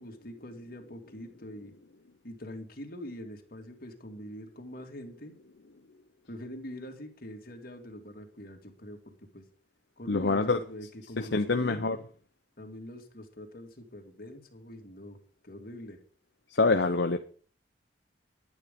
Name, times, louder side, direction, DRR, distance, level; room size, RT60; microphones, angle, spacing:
voice 1, 0.0-1.7 2.2-5.3 6.3-9.4 10.0-11.9 12.6-15.2 15.4-16.0, equal, 55° left, 2.3 m, -44 dB
voice 2, 10.1-10.6 11.2-12.0 16.6-17.2, left 3 dB, 75° left, 0.8 m, -25 dB
11.0 x 9.7 x 5.2 m
head